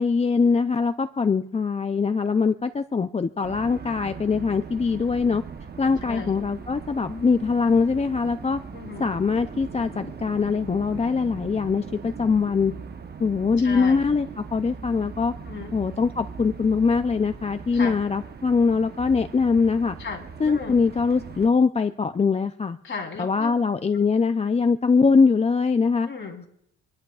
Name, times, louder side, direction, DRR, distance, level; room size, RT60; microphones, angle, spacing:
voice 1, 0.0-5.4 5.8-8.6 9.0-12.7 13.2-15.3 15.7-20.0 20.4-22.8 23.2-26.1, left 5 dB, 20° left, 9 dB, 0.5 m, -22 dB
sound 1, 3.4-21.5, right 5 dB, 35° right, 1.0 m, -40 dB
voice 2, 6.0-6.5 8.7-9.1 13.6-14.0 15.4-15.7 17.7-18.0 20.0-20.7 22.8-23.6 26.1-26.4, left 5 dB, 40° left, 1 dB, 3.6 m, -35 dB
27.5 x 11.0 x 2.4 m, 0.74 s
cardioid pair, 90°, 30 cm